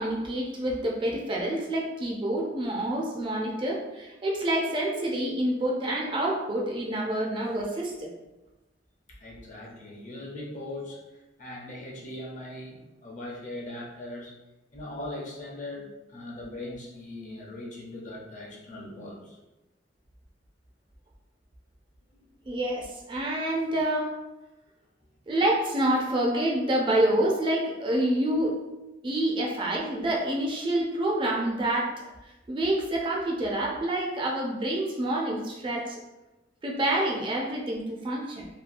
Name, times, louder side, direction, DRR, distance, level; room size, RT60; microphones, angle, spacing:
voice 1, 0.0-8.1 22.5-24.1 25.3-28.6 29.0-31.9 32.5-36.0 36.6-38.5, right 1 dB, 25° right, -1 dB, 0.3 m, -27 dB
voice 2, 9.1-14.3 14.7-19.4 22.1-22.3, left 1 dB, 40° left, -3 dB, 0.6 m, -40 dB
2.7 x 2.2 x 2.5 m, 1.0 s
head